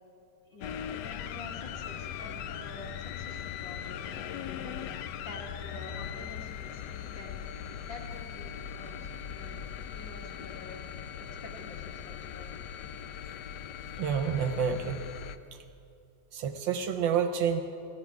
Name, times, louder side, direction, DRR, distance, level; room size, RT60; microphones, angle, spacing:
voice 1, 0.5-4.2 4.5-4.8 5.2-7.4 7.8-9.6 9.9-10.8 11.2-12.5, left 2 dB, 60° left, -2 dB, 2.7 m, -47 dB
sound 1, 0.6-15.4, left 9 dB, 80° left, 0.9 m, -40 dB
voice 2, 14.0-15.0 15.5-15.6 16.3-17.6, right 7 dB, 70° right, 7 dB, 1.3 m, -28 dB
17.0 x 14.0 x 4.7 m, 2.6 s
omnidirectional pair, 2.3 m